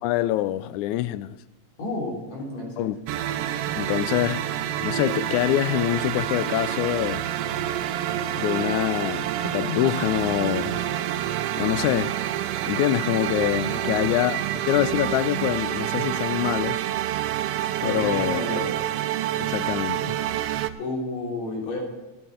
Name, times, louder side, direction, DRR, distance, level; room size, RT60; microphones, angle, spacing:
voice 1, 0.0-1.4 2.8-3.0 3.8-4.5 4.8-7.3 8.4-10.8 11.6-12.2 12.7-14.4 14.7-16.8 17.8-18.4 19.4-20.2, left 14 dB, 85° left, 2.0 m, -25 dB
voice 2, 1.8-2.9 13.7-14.0 17.8-18.7 20.8-21.8, left 2 dB, 65° left, 4.7 m, -31 dB
sound 1, 3.1-20.7, right 12 dB, 80° right, 1.3 m, -28 dB
13.0 x 8.9 x 7.8 m
omnidirectional pair, 3.4 m